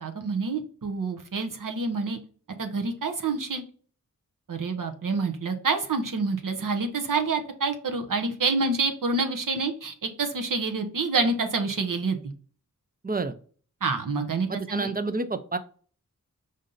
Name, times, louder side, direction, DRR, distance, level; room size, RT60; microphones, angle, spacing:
voice 1, 0.0-2.2 2.6-3.6 4.5-12.2 13.8-14.9, right 3 dB, 70° right, 5 dB, 0.9 m, -27 dB
voice 2, 13.0-13.3 14.5-15.6, right 3 dB, 25° right, 11 dB, 0.5 m, -29 dB
5.1 x 2.7 x 3.8 m, 0.43 s
wide cardioid pair, 60°, 33 cm